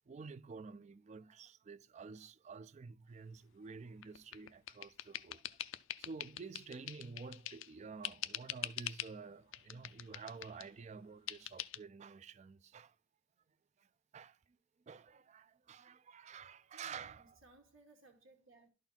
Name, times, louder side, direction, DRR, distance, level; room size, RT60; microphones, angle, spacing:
voice 1, 0.1-5.4 6.0-13.0 13.8-14.6 14.9-17.4, right 5 dB, 35° right, 0.3 m, -50 dB
sound 1, 4.0-7.7 8.0-9.2 9.5-10.7 11.3-11.8, left 13 dB, 65° left, 0.4 m, -44 dB
voice 2, 16.7-18.7, right 2 dB, 75° right, 1.3 m, -63 dB
11.5 x 4.4 x 3.9 m
head